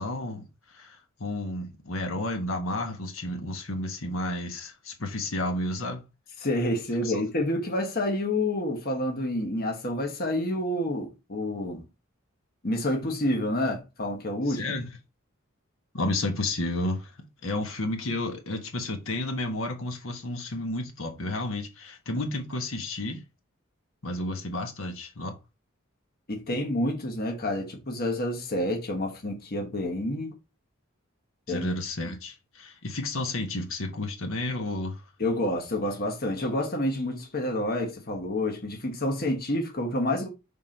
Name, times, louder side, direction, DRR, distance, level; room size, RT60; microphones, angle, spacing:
voice 1, 0.0-6.0 7.0-7.2 14.5-14.9 15.9-17.2 17.4-23.2 24.0-25.3 31.5-35.0, left 2 dB, 75° left, 1.4 m, -32 dB
voice 2, 6.4-11.8 12.6-14.6 26.3-30.3 31.5-31.7 35.2-40.3, left 1 dB, 50° left, 1.3 m, -28 dB
5.9 x 3.7 x 4.5 m
head